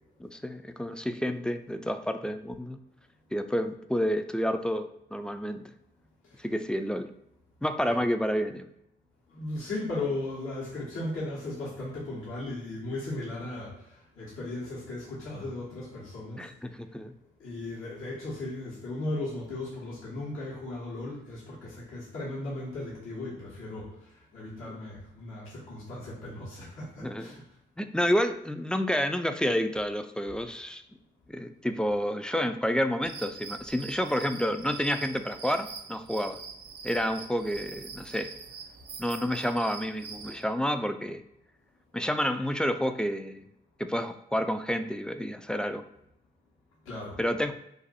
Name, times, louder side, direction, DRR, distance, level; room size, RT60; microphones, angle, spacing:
voice 1, 0.2-2.8 3.3-5.6 6.4-7.1 7.6-8.7 16.4-17.1 27.0-27.4 27.8-30.8 31.3-36.4 36.8-38.3 39.0-41.2 41.9-43.5 43.8-45.8 47.2-47.5, equal, 5° left, 8 dB, 0.3 m, -29 dB
voice 2, 9.3-16.5 17.4-27.4 46.8-47.2, left 2 dB, 75° left, -7 dB, 1.1 m, -37 dB
sound 1, 33.0-40.4, right 5 dB, 50° right, 0.6 m, -44 dB
2.6 x 2.5 x 4.0 m, 0.78 s
hypercardioid pair, 40°, 21 cm